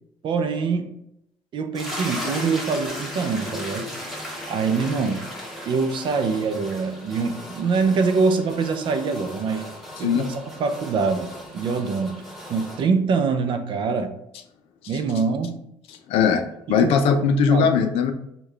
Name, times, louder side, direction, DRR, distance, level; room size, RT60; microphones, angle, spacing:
voice 1, 0.2-0.9 1.5-3.9 4.5-5.2 5.7-9.6 10.0-12.2 12.5-14.1 14.9-15.6 16.7-16.9 17.5-17.7, right 4 dB, 55° right, 7 dB, 0.5 m, -24 dB
sound 1, 1.7-12.8, equal, ahead, 1.1 m, -36 dB
voice 2, 10.0-10.3 16.1-16.4 16.7-18.1, left 6 dB, 75° left, 7 dB, 0.4 m, -19 dB
3.7 x 2.3 x 3.2 m, 0.79 s
cardioid pair, 90°, 10 cm